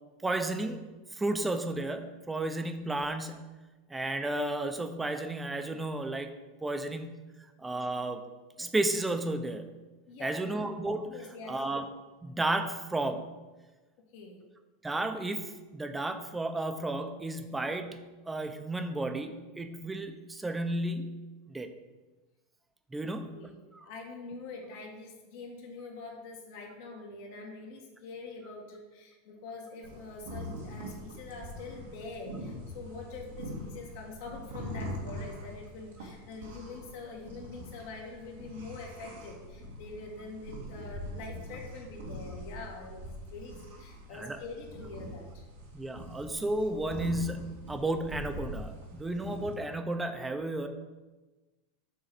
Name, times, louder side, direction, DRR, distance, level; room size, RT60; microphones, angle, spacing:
voice 1, 0.2-0.8 1.1-3.5 3.9-6.3 6.6-7.1 7.6-8.2 8.6-9.7 10.2-11.1 11.5-11.8 12.2-13.3 14.8-21.2 21.5-21.7 22.9-23.4 23.8-23.9 44.1-44.4 45.7-50.7, right 2 dB, 10° right, 7 dB, 0.7 m, -33 dB
voice 2, 10.1-10.5 11.0-11.8 14.1-14.4 23.0-23.5 23.8-45.5, left 3 dB, 65° left, 0 dB, 1.8 m, -45 dB
sound 1, 29.8-49.5, equal, 90° right, 1.7 m, -43 dB
6.6 x 3.9 x 6.0 m, 1.2 s
hypercardioid pair, 105°, 0 cm